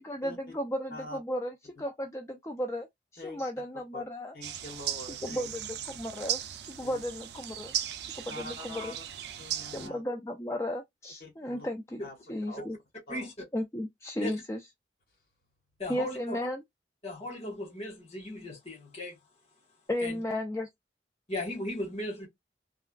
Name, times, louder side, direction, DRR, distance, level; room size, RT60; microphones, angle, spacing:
voice 1, 0.0-1.5 1.8-2.9 3.1-4.3 5.2-6.4 6.7-7.7 8.2-8.9 9.7-12.0 12.3-12.8 13.5-14.6 15.9-16.6 19.9-20.7, left 1 dB, 15° left, 0.3 m, -34 dB
voice 2, 4.3-5.5 6.8-7.0 8.3-9.0 9.4-10.0 11.2-11.7 12.0-12.2 12.5-12.6 13.1-13.3, left 1 dB, 55° left, 1.4 m, -44 dB
sound 1, 4.4-9.9, right 10 dB, 70° right, 0.4 m, -37 dB
voice 3, 15.8-16.4 17.0-19.1 20.0-20.2 21.3-22.3, left 1 dB, 35° left, 1.5 m, -37 dB
3.4 x 2.2 x 2.3 m
head